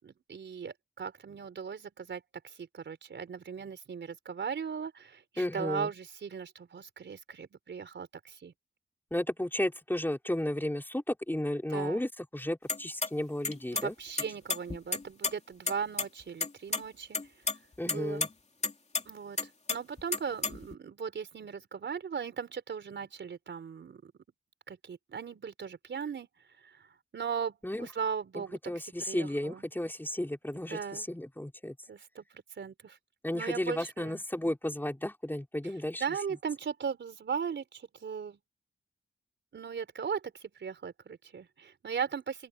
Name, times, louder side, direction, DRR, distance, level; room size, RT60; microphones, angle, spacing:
voice 1, 0.0-8.5 11.7-12.0 13.7-17.2 17.9-18.2 19.1-19.4 19.7-24.1 24.7-26.3 26.7-26.9 27.1-28.6 29.0-29.6 30.7-31.1 31.9-33.0 33.3-34.2 36.0-38.4 39.5-42.5, right 6 dB, 80° right, 4.4 m, -38 dB
voice 2, 5.4-5.9 9.1-13.9 17.8-18.3 27.6-27.9 28.3-31.8 33.2-36.4, left 1 dB, 10° left, 4.4 m, -33 dB
sound 1, 12.7-13.1 13.4-13.9 14.2-15.3 15.7-15.8 16.0-16.1 16.4-16.8 17.1-17.6 17.9-18.3 18.6-19.0 19.4-20.8, left 3 dB, 35° left, 2.8 m, -31 dB
open air
wide cardioid pair, 85°, 19 cm